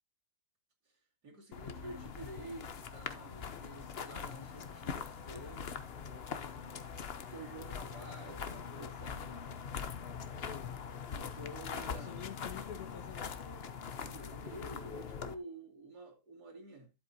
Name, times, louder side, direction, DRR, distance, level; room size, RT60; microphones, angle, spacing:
voice 1, 1.2-5.8 7.3-9.4 11.1-12.2 14.0-16.9, right 2 dB, 75° right, 3.1 m, -50 dB
sound 1, 1.5-15.3, left 6 dB, 45° left, 0.9 m, -43 dB
Wind instrument woodwind instrument, 4.0-9.7, left 3 dB, 25° left, 1.4 m, -62 dB
voice 2, 4.2-4.5 10.3-10.8 11.5-13.4, left 9 dB, 70° left, 1.2 m, -49 dB
12.0 x 7.9 x 2.7 m
omnidirectional pair, 1.8 m